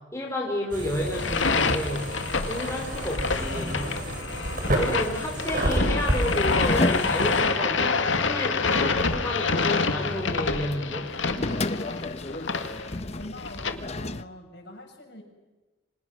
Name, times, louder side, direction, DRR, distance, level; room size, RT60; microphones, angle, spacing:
voice 1, 0.1-2.1 2.5-3.9 4.7-11.1, left 1 dB, 15° left, -1 dB, 4.2 m, -31 dB
sound 1, 0.7-7.4, right 1 dB, 45° right, 6.4 m, -30 dB
sound 2, 1.1-13.7, left 4 dB, 75° left, 2.2 m, -27 dB
sound 3, 5.0-14.2, left 2 dB, 35° left, 0.9 m, -33 dB
voice 2, 13.2-15.2, left 1 dB, 55° left, 2 dB, 7.0 m, -44 dB
29.5 x 26.5 x 6.2 m, 1.1 s
head